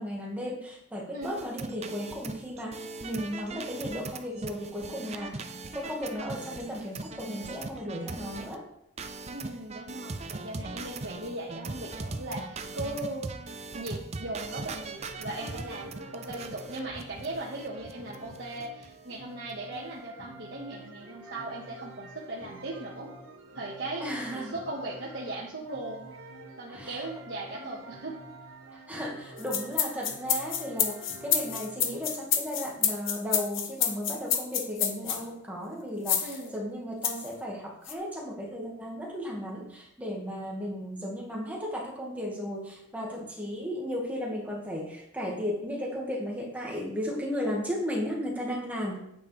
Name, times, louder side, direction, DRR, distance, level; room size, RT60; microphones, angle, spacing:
voice 1, 0.0-5.5 5.7-8.7 10.6-10.8 24.0-24.6 26.7-27.1 27.6-27.7 28.7-49.0, equal, 5° right, -2 dB, 1.7 m, -35 dB
sound 1, 1.2-8.5 9.0-18.9 19.1-19.2 19.5-19.8, right 3 dB, 30° right, 0.6 m, -40 dB
voice 2, 9.3-13.3 13.7-23.1 23.5-24.0 24.3-26.1 26.6-28.2 36.2-36.6, right 2 dB, 55° right, -5 dB, 1.5 m, -38 dB
sound 2, 15.0-32.3, right 1 dB, 80° right, 2.0 m, -48 dB
sound 3, 29.4-35.2 36.1-36.4 37.0-37.3 37.9-38.0, left 8 dB, 70° left, 1.1 m, -28 dB
9.1 x 9.0 x 3.3 m, 0.76 s
head